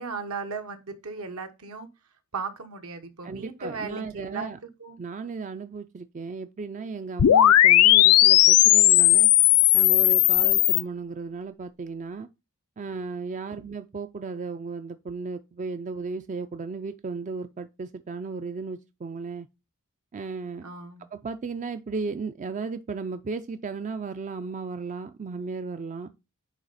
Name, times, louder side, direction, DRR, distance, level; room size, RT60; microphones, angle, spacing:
voice 1, 0.0-1.9 2.3-4.5 4.8-5.0 13.5-13.7 20.6-21.1, right 4 dB, 70° right, 1.1 m, -36 dB
voice 2, 3.2-4.6 5.0-9.3 9.7-12.3 12.8-19.5 20.1-20.7 21.1-26.1, right 4 dB, 35° right, 0.4 m, -35 dB
sound 1, 7.2-10.8, left 14 dB, 80° left, 0.4 m, -17 dB
9.0 x 3.4 x 4.0 m
head